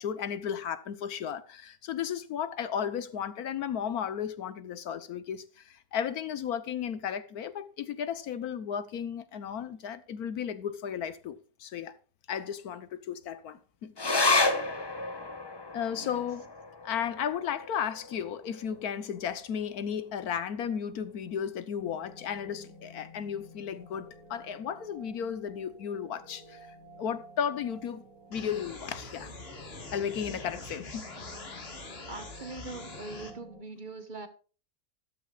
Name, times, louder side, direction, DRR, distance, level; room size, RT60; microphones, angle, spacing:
voice 1, 0.0-11.9 12.3-14.6 15.7-16.5 16.8-26.7 27.0-28.0 28.3-29.3 29.9-31.1, left 8 dB, 75° left, 1.4 m, -34 dB
sound 1, 14.0-20.7 21.1-21.2 21.5-22.2 22.7-22.8, left 3 dB, 20° left, 0.7 m, -32 dB
voice 2, 15.9-16.3 32.1-34.3, right 3 dB, 35° right, 1.2 m, -42 dB
sound 2, 21.8-33.6, right 1 dB, 65° right, 3.2 m, -53 dB
sound 3, 28.3-33.3, left 2 dB, 40° left, 2.0 m, -44 dB
13.5 x 12.5 x 2.4 m
omnidirectional pair, 1.6 m